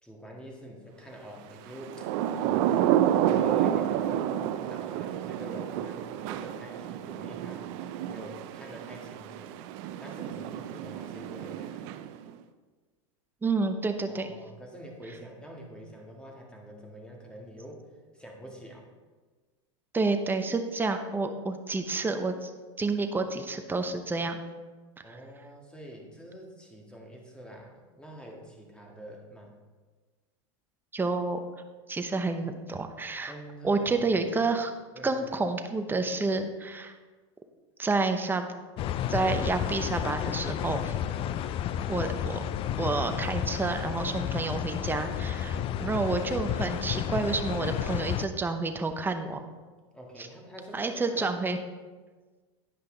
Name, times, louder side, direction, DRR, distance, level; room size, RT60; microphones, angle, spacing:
voice 1, 0.0-2.1 2.4-3.0 3.3-7.7 8.1-9.6 10.0-11.8 14.1-17.9 18.1-18.8 25.0-29.5 33.3-34.5 34.9-35.2 41.0-41.3 45.4-45.8 49.9-51.3, right 1 dB, 5° left, -1 dB, 1.8 m, -45 dB
Thunder / Rain, 1.8-12.3, right 11 dB, 60° right, 0.5 m, -30 dB
voice 2, 13.4-14.3 19.9-22.5 22.8-24.4 25.1-25.2 30.9-31.4 31.9-33.3 33.6-34.7 35.0-36.9 37.8-38.5 39.1-40.9 41.9-42.4 42.8-49.4 50.7-51.6, right 3 dB, 10° right, 6 dB, 0.7 m, -29 dB
sound 1, 38.8-48.3, left 10 dB, 35° left, 0.3 m, -31 dB
10.0 x 5.5 x 3.9 m, 1.4 s
hypercardioid pair, 110°, 16 cm